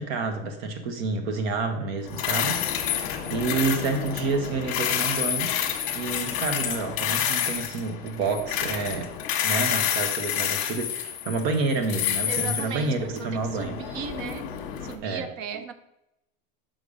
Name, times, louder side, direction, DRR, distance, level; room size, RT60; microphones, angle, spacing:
voice 1, 0.0-2.9 3.3-5.5 5.9-9.1 9.4-13.7 15.0-15.2, right 4 dB, 70° right, 1.3 m, -29 dB
sound 1, 2.1-14.9, left 9 dB, 40° left, 1.1 m, -29 dB
voice 2, 12.3-14.5 14.8-15.7, right 7 dB, 45° right, 0.6 m, -36 dB
5.8 x 5.5 x 5.0 m
supercardioid pair, 165°, 32 cm